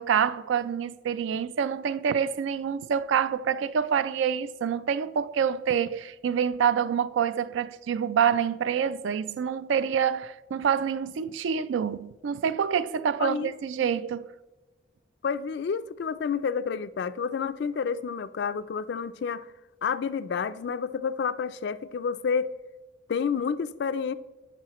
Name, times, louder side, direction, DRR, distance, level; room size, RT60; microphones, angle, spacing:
voice 1, 0.0-14.3, right 7 dB, 75° right, 0.3 m, -27 dB
voice 2, 13.2-13.5 13.8-13.9 15.2-19.5 19.8-22.5 23.1-24.1, left 6 dB, 60° left, 0.3 m, -29 dB
11.5 x 4.8 x 3.0 m
head